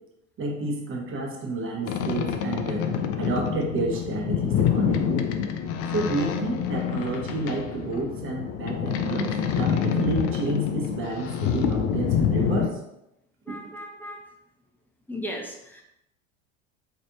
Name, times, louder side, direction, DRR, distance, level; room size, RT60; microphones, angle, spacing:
voice 1, 0.4-5.3 5.9-12.8, right 2 dB, 30° right, 0 dB, 1.1 m, -30 dB
Boat Water vehicle, 1.8-12.7, left 8 dB, 40° left, 0.5 m, -27 dB
voice 2, 13.5-14.2 15.1-15.8, equal, 5° left, 0 dB, 0.7 m, -36 dB
4.2 x 3.3 x 2.9 m, 0.84 s
hypercardioid pair, 75°, 40 cm